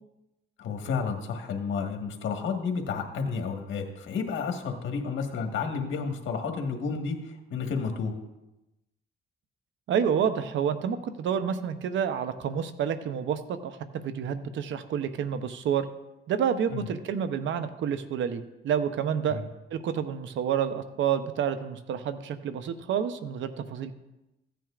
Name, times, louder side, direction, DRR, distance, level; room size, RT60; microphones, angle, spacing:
voice 1, 0.6-7.2 7.5-8.1 16.7-16.8 19.3-19.4, left 5 dB, 75° left, 3 dB, 1.5 m, -31 dB
voice 2, 9.9-15.9 16.3-19.4 19.7-23.9, right 8 dB, 70° right, 10 dB, 0.8 m, -29 dB
15.0 x 9.1 x 2.5 m, 0.96 s
cardioid pair, 90°, 20 cm